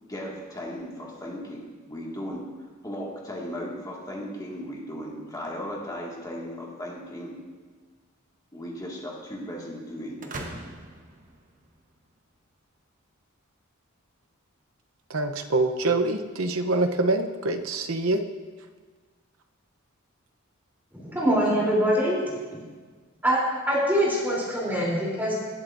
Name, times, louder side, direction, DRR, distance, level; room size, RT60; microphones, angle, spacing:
voice 1, 0.0-2.4 2.8-7.3 8.5-10.2, equal, 20° left, -3 dB, 1.9 m, -36 dB
sound 1, 10.2-12.1, right 2 dB, 40° right, 1.1 m, -40 dB
voice 2, 15.1-18.2, right 2 dB, 70° right, 6 dB, 0.7 m, -25 dB
voice 3, 20.9-22.6 23.2-23.4 23.7-25.3, equal, 10° right, -5 dB, 3.2 m, -24 dB
18.5 x 8.0 x 2.6 m, 1.4 s
head